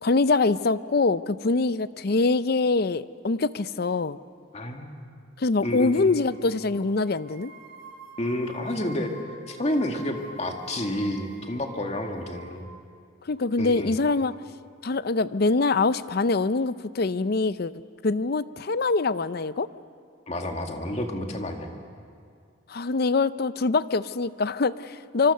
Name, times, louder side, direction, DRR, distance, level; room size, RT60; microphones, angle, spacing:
voice 1, 0.0-4.2 5.4-7.5 13.3-14.3 14.8-17.7 18.0-19.7 22.7-25.3, left 3 dB, 50° left, 15 dB, 0.5 m, -24 dB
voice 2, 4.5-5.0 5.6-6.1 8.2-9.2 9.5-12.7 13.6-14.0 20.3-21.7, left 1 dB, 35° left, 3 dB, 2.0 m, -30 dB
sound 1, 6.3-6.7 7.0-12.6, right 1 dB, 65° right, 2.9 m, -46 dB
25.5 x 25.0 x 6.7 m, 2.3 s
head